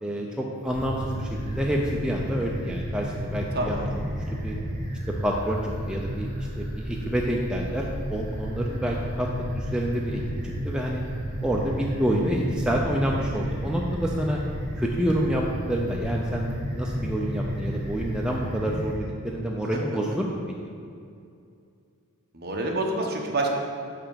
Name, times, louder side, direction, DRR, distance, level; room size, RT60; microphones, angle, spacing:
voice 1, 0.0-3.9 4.3-4.5 5.2-6.3 6.6-9.3 9.5-11.0 11.4-14.4 14.8-15.4 15.7-20.4, equal, 5° right, -2 dB, 0.5 m, -28 dB
sound 1, 0.6-19.0, equal, 25° right, 2.1 m, -32 dB
voice 2, 3.5-3.9 13.2-13.5 22.3-23.5, right 2 dB, 45° right, 0 dB, 1.1 m, -28 dB
5.8 x 5.7 x 6.8 m, 2.4 s
head